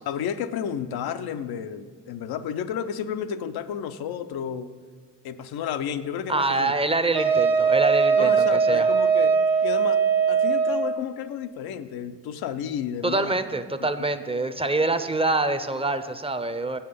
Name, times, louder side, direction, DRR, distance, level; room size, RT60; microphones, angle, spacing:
voice 1, 0.1-4.7 5.2-6.7 8.2-9.4 9.6-10.0 10.3-13.3 13.8-13.9, left 8 dB, 80° left, 10 dB, 0.6 m, -31 dB
voice 2, 6.3-8.9 13.0-16.8, right 2 dB, 15° right, 11 dB, 0.6 m, -25 dB
Wind instrument woodwind instrument, 7.1-11.0, right 6 dB, 75° right, 1.3 m, -20 dB
7.6 x 5.7 x 6.6 m, 1.6 s
supercardioid pair, 60°, 36 cm